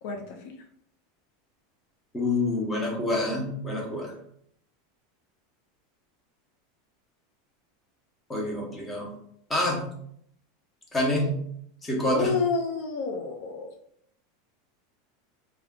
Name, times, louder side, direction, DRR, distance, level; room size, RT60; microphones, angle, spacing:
voice 1, 0.0-0.6 12.1-13.7, left 5 dB, 55° left, 2 dB, 0.4 m, -29 dB
voice 2, 2.1-4.1 8.3-9.1 9.5-9.9 10.9-11.4 11.8-12.3, left 1 dB, 10° left, -2 dB, 0.7 m, -27 dB
2.3 x 2.2 x 3.5 m, 0.69 s
supercardioid pair, 155°, 0 cm